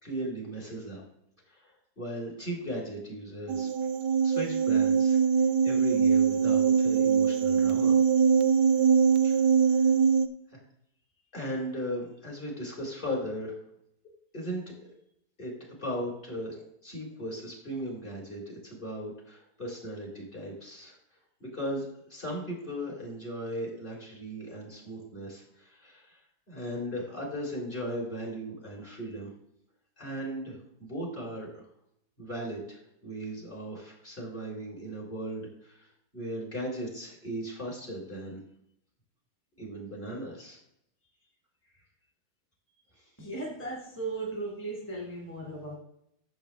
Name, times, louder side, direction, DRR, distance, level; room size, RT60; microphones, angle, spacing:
voice 1, 0.0-1.0 1.5-3.7 4.2-8.0 9.2-9.4 9.7-9.9 10.5-10.6 11.3-13.6 14.3-14.6 15.4-21.0 21.4-29.3 30.0-31.7 32.2-35.9 36.1-38.4 39.6-40.6 43.0-43.1, equal, 30° left, -2 dB, 4.1 m, -37 dB
sound 1, 3.5-10.3, right 6 dB, 85° right, 1.4 m, -23 dB
voice 2, 43.2-45.7, right 2 dB, 5° left, -3 dB, 2.0 m, -36 dB
14.0 x 7.6 x 3.4 m, 0.76 s
omnidirectional pair, 1.8 m